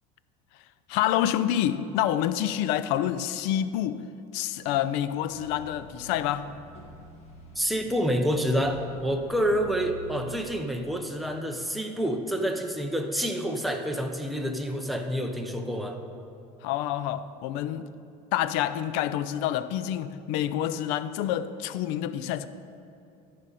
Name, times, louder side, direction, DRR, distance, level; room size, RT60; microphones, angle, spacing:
voice 1, 0.9-4.0 4.3-6.5 16.6-17.9 18.3-22.5, left 11 dB, 70° left, 0.5 m, -27 dB
sound 1, 5.2-10.8, right 1 dB, 40° left, 1.7 m, -47 dB
voice 2, 7.6-16.0, equal, ahead, 0.7 m, -28 dB
13.5 x 5.1 x 4.2 m
supercardioid pair, 115°, 18 cm